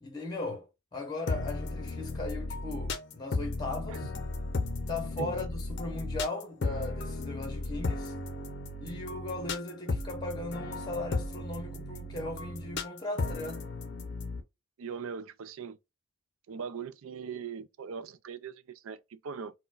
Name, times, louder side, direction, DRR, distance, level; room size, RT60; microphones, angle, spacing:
voice 1, 0.0-4.1 4.9-8.1 8.8-13.7, left 2 dB, 20° left, 0.8 m, -38 dB
sound 1, 1.3-14.4, left 2 dB, 50° left, 0.5 m, -35 dB
voice 2, 14.8-15.8 16.5-19.5, right 6 dB, 75° right, 0.4 m, -40 dB
4.3 x 2.1 x 2.4 m
head